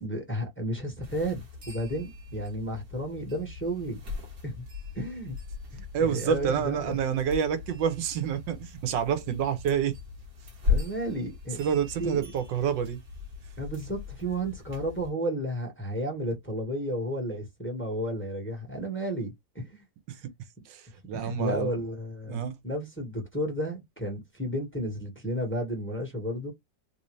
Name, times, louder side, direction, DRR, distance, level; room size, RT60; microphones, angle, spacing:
voice 1, 0.0-4.0 4.4-4.6 4.9-5.4 5.7-7.0 10.6-11.6 12.0-12.3 13.6-19.8 21.1-26.5, equal, 5° left, 1.3 m, -32 dB
sound 1, 1.0-15.1, left 5 dB, 55° right, 1.6 m, -38 dB
voice 2, 5.9-10.0 11.6-13.0 20.7-20.8 21.1-21.7 22.3-22.6, right 8 dB, 90° right, 1.5 m, -28 dB
3.4 x 2.7 x 3.1 m
omnidirectional pair, 1.9 m